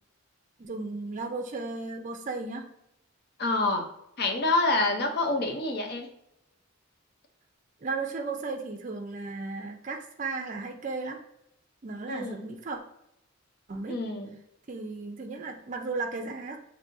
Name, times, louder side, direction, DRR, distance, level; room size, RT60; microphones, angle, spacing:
voice 1, 0.6-2.7 7.8-11.2 11.8-12.8 13.7-14.0 14.7-16.6, right 3 dB, 35° right, 4 dB, 0.4 m, -35 dB
voice 2, 3.4-3.9 4.2-6.1 12.1-12.4 13.9-14.3, left 2 dB, 50° left, 3 dB, 0.6 m, -27 dB
5.9 x 2.7 x 2.6 m, 0.78 s
head